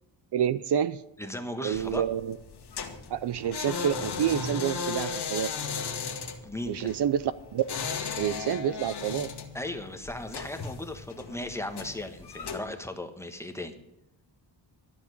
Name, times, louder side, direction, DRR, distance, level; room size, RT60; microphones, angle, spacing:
voice 1, 0.3-1.0 1.6-2.4 3.1-5.5 6.7-7.6 8.2-9.3, right 9 dB, 60° right, 16 dB, 0.6 m, -28 dB
voice 2, 1.2-2.0 6.4-6.9 9.5-13.7, left 1 dB, 5° left, 6 dB, 1.3 m, -36 dB
sound 1, 1.7-12.6, left 5 dB, 60° left, 1.7 m, -36 dB
12.5 x 7.2 x 9.6 m, 0.87 s
wide cardioid pair, 150°, 45 cm